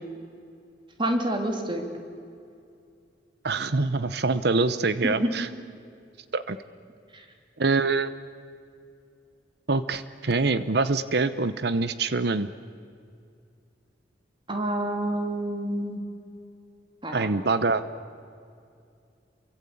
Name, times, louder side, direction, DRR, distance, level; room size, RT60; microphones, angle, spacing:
voice 1, 1.0-1.8 5.0-5.3 7.1-7.2 14.5-16.0 17.0-17.3, right 1 dB, 30° right, 3 dB, 3.3 m, -28 dB
voice 2, 3.4-5.5 6.3-6.6 7.6-8.1 9.7-12.5 17.1-17.8, right 3 dB, 60° right, 13 dB, 0.8 m, -25 dB
28.5 x 23.5 x 8.6 m, 2.5 s
head